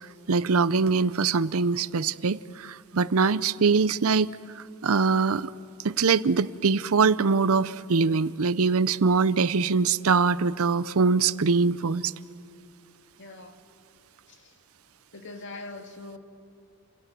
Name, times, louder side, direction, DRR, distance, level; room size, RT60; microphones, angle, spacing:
voice 1, 0.3-5.5 5.8-12.1, right 4 dB, 70° right, 17 dB, 0.6 m, -23 dB
voice 2, 13.2-13.6 14.3-14.6 15.1-16.2, left 2 dB, 55° left, 5 dB, 2.2 m, -42 dB
29.5 x 26.0 x 7.6 m, 2.3 s
head